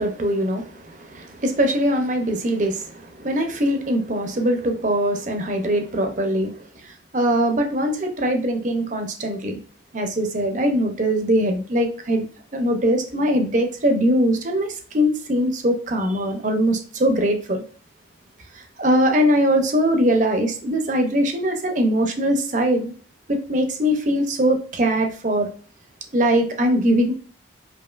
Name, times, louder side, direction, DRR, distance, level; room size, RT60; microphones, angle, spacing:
voice 1, 0.0-6.5 7.1-9.6 9.9-12.2 12.5-14.7 14.9-17.6 18.8-22.9 23.3-25.5 26.1-27.1, equal, 40° right, 4 dB, 0.6 m, -21 dB
5.0 x 2.7 x 2.4 m, 0.42 s
head